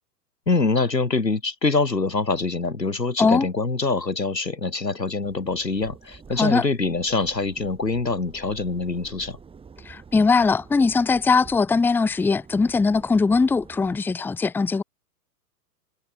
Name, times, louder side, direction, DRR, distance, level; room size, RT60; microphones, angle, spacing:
voice 1, 0.5-9.4, left 3 dB, 85° left, 2.2 m, -24 dB
sound 1, 5.2-14.0, right 5 dB, 10° right, 5.4 m, -47 dB
voice 2, 9.9-14.8, left 4 dB, 5° left, 1.0 m, -20 dB
figure-of-eight pair, 110°, 48 cm